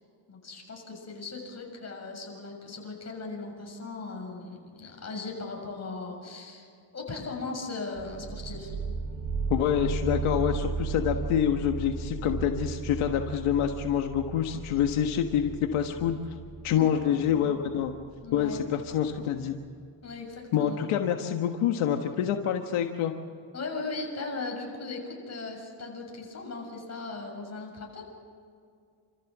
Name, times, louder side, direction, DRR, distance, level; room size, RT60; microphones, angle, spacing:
voice 1, 0.3-6.7 6.9-8.8 16.7-17.6 18.2-18.6 20.0-20.8 23.5-28.0, left 3 dB, 30° left, 0 dB, 6.9 m, -38 dB
sound 1, 7.9-19.4, right 4 dB, 75° right, 7.0 m, -35 dB
voice 2, 9.5-16.2 16.6-17.9 18.3-19.5 20.5-23.1, left 9 dB, 85° left, 4 dB, 1.5 m, -27 dB
29.0 x 14.5 x 7.4 m, 2.3 s
cardioid pair, 110°, 48 cm